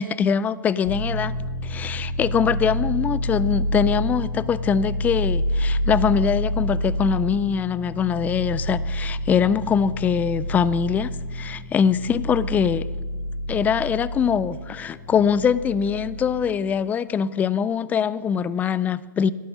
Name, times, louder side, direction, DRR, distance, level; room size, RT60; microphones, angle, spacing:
voice 1, 0.0-1.3 1.6-12.9 13.5-19.3, left 7 dB, 15° left, 18 dB, 0.3 m, -23 dB
sound 1, 0.8-16.5, equal, 80° left, 2.6 m, -28 dB
11.5 x 9.4 x 6.1 m, 1.4 s
hypercardioid pair, 125°, 11 cm